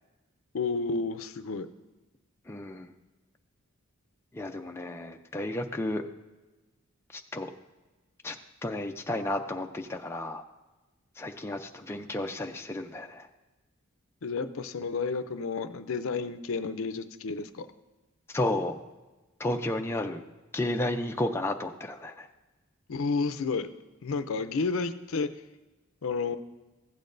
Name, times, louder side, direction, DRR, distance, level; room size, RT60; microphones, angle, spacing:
voice 1, 0.5-1.7 14.2-17.7 22.9-23.7 24.0-25.3 26.0-26.4, left 4 dB, 70° left, 11 dB, 0.5 m, -31 dB
voice 2, 2.5-2.9 4.3-6.0 7.1-7.5 8.2-8.4 8.6-10.4 11.2-13.3 18.3-18.8 19.4-20.2 20.5-22.3, left 1 dB, 10° left, 3 dB, 0.4 m, -32 dB
15.0 x 8.5 x 2.6 m, 1.1 s
head